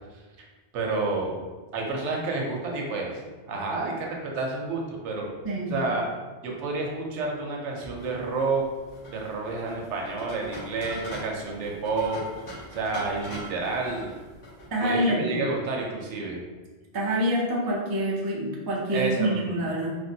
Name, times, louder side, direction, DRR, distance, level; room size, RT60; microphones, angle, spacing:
voice 1, 0.7-1.3 1.7-3.2 3.5-5.3 5.7-6.0 6.4-8.6 9.1-12.2 12.7-14.1 14.8-16.4 18.9-19.4, right 3 dB, 85° right, 0 dB, 0.9 m, -29 dB
sound 1, 8.0-14.7, equal, 80° left, 1.2 m, -42 dB
voice 2, 14.7-15.4 16.9-20.0, equal, 35° right, -3 dB, 0.3 m, -26 dB
3.1 x 2.5 x 2.6 m, 1.3 s
omnidirectional pair, 1.2 m